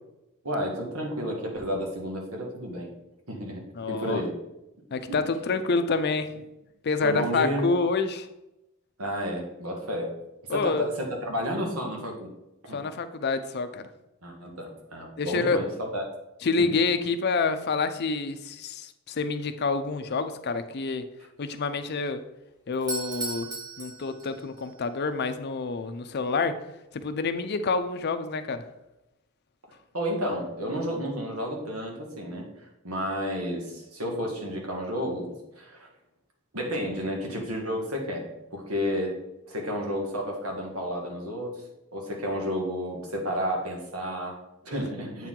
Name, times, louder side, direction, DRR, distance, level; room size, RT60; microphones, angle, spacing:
voice 1, 0.4-2.9 3.3-4.3 5.1-5.2 7.0-7.7 9.0-10.1 10.5-12.3 12.6-12.8 14.2-16.0 16.6-16.7 29.9-35.9 36.5-39.2 39.5-41.6 41.9-45.3, equal, 90° right, 1 dB, 1.6 m, -31 dB
voice 2, 3.8-4.2 4.9-6.3 6.8-8.3 10.5-10.9 12.7-13.9 15.2-15.6 16.4-21.1 21.4-22.2 22.7-26.7 26.9-28.7, left 4 dB, 50° left, 10 dB, 0.5 m, -28 dB
Doorbell, 22.7-24.7, right 2 dB, 20° right, 0.9 m, -36 dB
8.1 x 4.5 x 3.8 m, 0.92 s
head